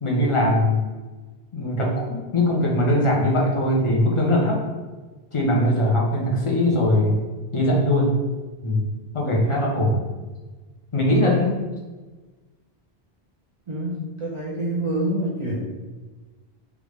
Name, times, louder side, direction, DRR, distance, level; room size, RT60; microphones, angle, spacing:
voice 1, 0.0-0.8 1.5-4.6 5.3-7.2 7.5-8.2 8.6-8.9 9.1-10.0 10.9-11.6, left 1 dB, 35° left, -2 dB, 0.6 m, -21 dB
voice 2, 13.7-15.7, right 1 dB, 40° right, -6 dB, 0.6 m, -27 dB
3.3 x 2.5 x 3.1 m, 1.3 s
omnidirectional pair, 1.0 m